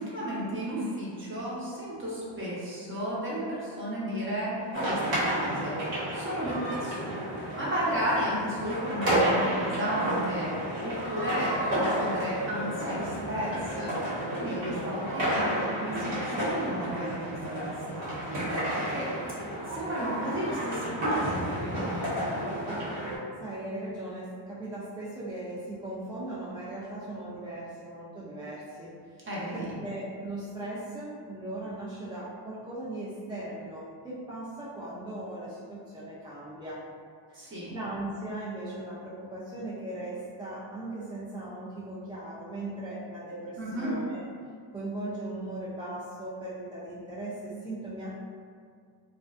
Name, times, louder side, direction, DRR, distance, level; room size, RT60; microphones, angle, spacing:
voice 1, 0.0-4.5 4.8-5.7 6.1-7.1 7.5-10.5 10.8-13.9 14.3-18.4 18.8-19.1 19.7-22.0 29.3-29.8 37.3-37.8 43.6-44.0, equal, 25° right, -7 dB, 0.8 m, -33 dB
sound 1, 4.7-23.2, right 1 dB, 80° right, 1.1 m, -31 dB
voice 2, 23.4-28.9 29.2-29.3 29.5-36.8 37.3-37.4 37.7-44.2 44.7-48.1, right 1 dB, 10° right, -9 dB, 0.3 m, -38 dB
2.4 x 2.2 x 2.3 m, 2.1 s
cardioid pair, 95°, 45 cm